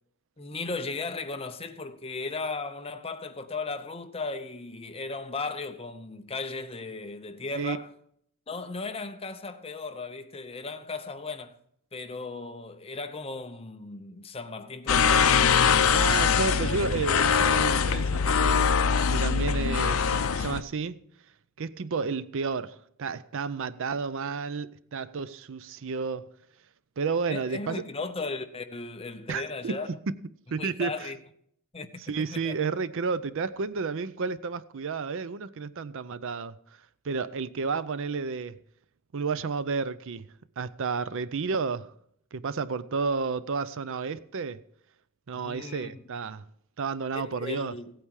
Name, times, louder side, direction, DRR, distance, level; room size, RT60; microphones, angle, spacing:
voice 1, 0.4-7.9 8.5-11.5 11.9-15.9 27.3-29.9 30.6-31.2 31.7-32.6 45.3-46.0 47.1-47.9, left 3 dB, 25° left, 0.8 m, -36 dB
sound 1, 14.9-20.6, left 6 dB, 70° left, 0.6 m, -23 dB
voice 2, 15.9-18.7 19.1-21.0 21.6-26.3 27.0-27.8 29.3-29.8 30.1-30.2 30.5-31.1 32.1-36.6 37.0-38.6 39.1-40.3 40.6-41.9 42.3-44.6 45.3-46.4 46.8-47.7, right 5 dB, 60° right, 0.5 m, -31 dB
16.0 x 8.8 x 4.8 m
head